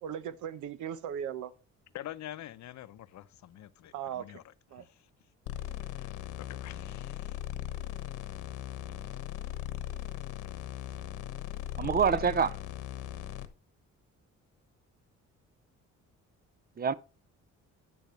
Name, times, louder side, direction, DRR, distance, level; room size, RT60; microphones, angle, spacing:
voice 1, 0.0-1.5 3.9-4.4 4.7-4.8, right 9 dB, 80° right, 0.8 m, -38 dB
voice 2, 1.9-4.4 4.8-4.9 5.9-6.1 6.4-7.4, left 13 dB, 65° left, 0.7 m, -46 dB
sound 1, 5.5-13.5, left 13 dB, 90° left, 1.1 m, -39 dB
voice 3, 11.8-12.5 16.8-16.9, right 6 dB, 30° right, 0.6 m, -26 dB
10.0 x 8.7 x 3.1 m
cardioid pair, 90°, 30 cm